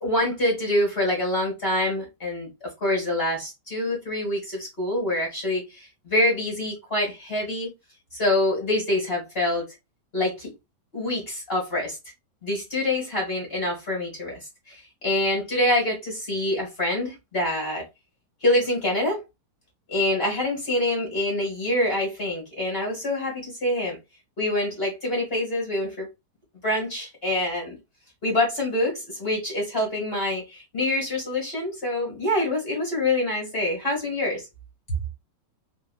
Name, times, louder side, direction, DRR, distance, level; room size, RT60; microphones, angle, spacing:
voice 1, 0.0-7.7 8.1-9.7 10.1-10.5 10.9-12.0 12.4-14.4 14.7-17.8 18.4-19.2 19.9-24.0 24.4-26.1 26.6-27.7 28.2-34.4, left 1 dB, 40° left, 0.8 m, -26 dB
5.3 x 2.5 x 2.3 m
omnidirectional pair, 3.8 m